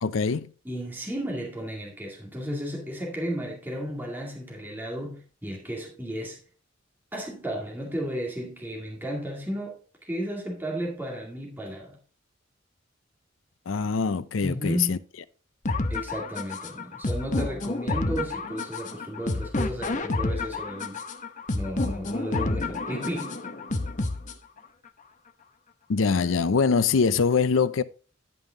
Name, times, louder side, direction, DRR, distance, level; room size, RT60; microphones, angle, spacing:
voice 1, 0.0-0.5 13.7-15.0 25.9-27.8, left 5 dB, 75° left, 0.5 m, -23 dB
voice 2, 0.6-6.4 7.1-12.0 14.4-15.0 15.9-21.0 21.5-23.4, equal, 10° right, 2.1 m, -33 dB
sound 1, 15.6-24.6, left 2 dB, 40° left, 0.8 m, -30 dB
11.0 x 5.5 x 3.8 m
head